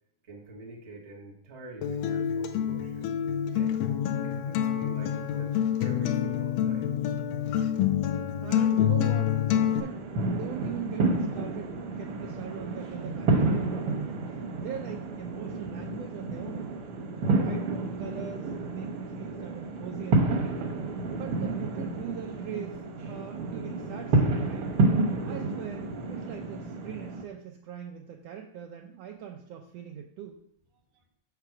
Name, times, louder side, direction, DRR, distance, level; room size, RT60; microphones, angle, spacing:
voice 1, 0.2-3.1 3.5-3.8 4.2-6.9, right 2 dB, 45° right, 0 dB, 0.8 m, -46 dB
Acoustic guitar, 1.8-9.8, left 9 dB, 90° left, 2.3 m, -27 dB
voice 2, 8.4-9.4 9.7-10.0 10.3-16.8 17.3-20.6 21.1-24.7 25.2-30.4, right 9 dB, 90° right, 2 dB, 1.4 m, -41 dB
sound 1, 9.5-27.2, right 2 dB, 65° right, 1.4 m, -30 dB
6.6 x 6.0 x 4.7 m, 0.68 s
omnidirectional pair, 3.6 m